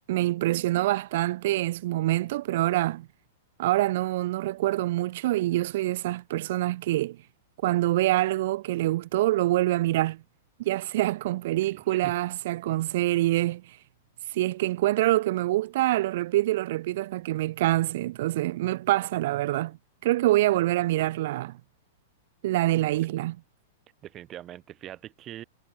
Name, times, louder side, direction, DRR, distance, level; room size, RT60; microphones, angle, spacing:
voice 1, 0.1-3.1 3.6-7.2 7.6-10.2 10.6-13.8 14.3-19.8 20.0-21.6 22.4-23.3, right 16 dB, 55° right, 0.3 m, -25 dB
voice 2, 11.7-12.1 24.0-25.4, right 12 dB, 25° right, 0.7 m, -43 dB
supercardioid pair, 160°, 0 cm